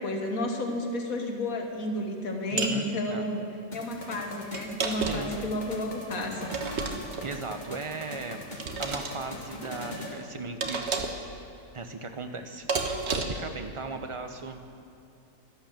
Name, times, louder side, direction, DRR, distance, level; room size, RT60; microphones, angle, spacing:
voice 1, 0.0-3.5 3.7-6.5, left 1 dB, 85° left, 3 dB, 1.9 m, -31 dB
voice 2, 2.5-3.3 5.1-5.3 7.2-11.1 11.7-14.6, right 3 dB, 25° right, 6 dB, 0.9 m, -38 dB
sound 1, 2.6-2.8 4.5-5.4 6.5-7.3 8.6-9.1 10.6-11.3 12.7-13.5, right 4 dB, 55° right, 1.4 m, -31 dB
sound 2, 3.7-10.2, left 1 dB, 35° left, 2.0 m, -41 dB
13.0 x 11.5 x 7.4 m, 2.7 s
omnidirectional pair, 1.4 m